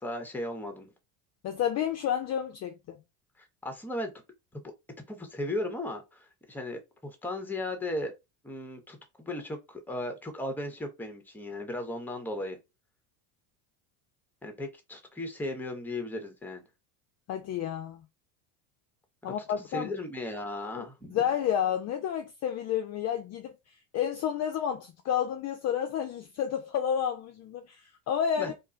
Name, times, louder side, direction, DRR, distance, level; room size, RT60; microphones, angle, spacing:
voice 1, 0.0-0.9 3.4-4.1 4.6-4.7 5.1-8.1 8.4-12.6 14.4-16.6 19.2-21.2 28.4-28.5, left 1 dB, 5° left, 0.7 m, -36 dB
voice 2, 1.4-3.0 17.3-18.1 19.2-19.9 20.8-20.9 21.1-23.6 23.9-28.5, left 9 dB, 35° left, 0.4 m, -30 dB
2.5 x 2.2 x 3.8 m
supercardioid pair, 110°, 47 cm